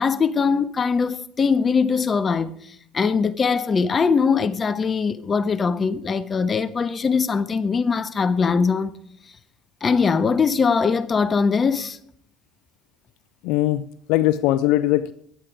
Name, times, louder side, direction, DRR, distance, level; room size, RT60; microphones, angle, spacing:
voice 1, 0.0-2.6 2.9-8.9 9.8-12.0, left 5 dB, 35° left, 1.3 m, -21 dB
voice 2, 13.4-15.1, left 15 dB, 75° left, 0.6 m, -20 dB
23.0 x 9.1 x 4.9 m
hypercardioid pair, 75°, 0 cm